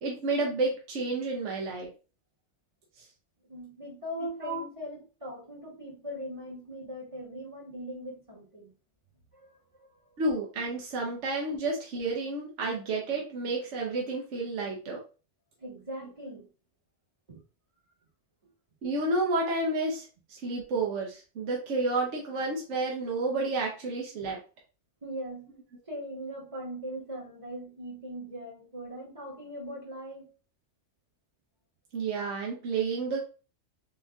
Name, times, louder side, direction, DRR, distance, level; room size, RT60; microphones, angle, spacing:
voice 1, 0.0-1.9 4.4-4.6 10.2-15.0 18.8-24.4 31.9-33.2, right 3 dB, 70° right, 1.1 m, -30 dB
voice 2, 3.5-8.7 9.3-10.1 15.6-16.5 17.3-17.4 25.0-25.5 25.9-30.3, equal, 25° right, 1.3 m, -40 dB
4.5 x 2.6 x 2.2 m
omnidirectional pair, 1.3 m